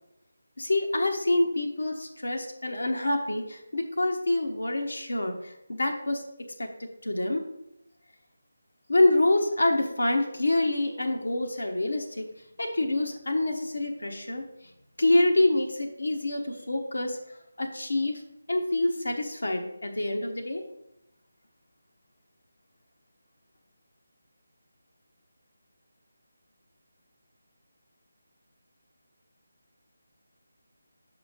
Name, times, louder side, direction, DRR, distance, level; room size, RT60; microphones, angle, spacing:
voice 1, 0.6-6.2 6.6-7.4 8.9-12.3 12.6-14.5 15.0-17.2 17.6-18.2 18.5-20.6, left 2 dB, 70° left, 3 dB, 1.1 m, -26 dB
6.1 x 5.0 x 5.1 m, 0.82 s
figure-of-eight pair, 155°, 0 cm